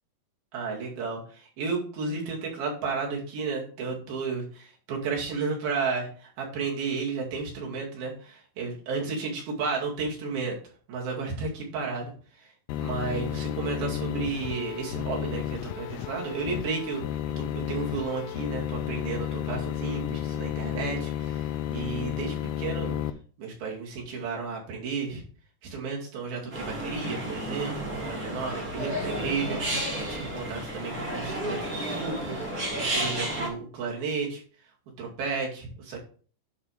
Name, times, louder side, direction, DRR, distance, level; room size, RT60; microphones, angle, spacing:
voice 1, 0.5-10.6 10.9-12.1 12.4-12.5 12.8-23.0 23.4-25.2 25.6-32.4 32.7-34.4 35.0-36.0, right 4 dB, 65° right, -2 dB, 4.1 m, -33 dB
sound 1, 12.7-23.1, left 12 dB, 85° left, 2.6 m, -32 dB
sound 2, 26.5-33.5, right 1 dB, 35° right, 2.8 m, -32 dB
10.5 x 5.4 x 3.4 m, 0.42 s
omnidirectional pair, 4.8 m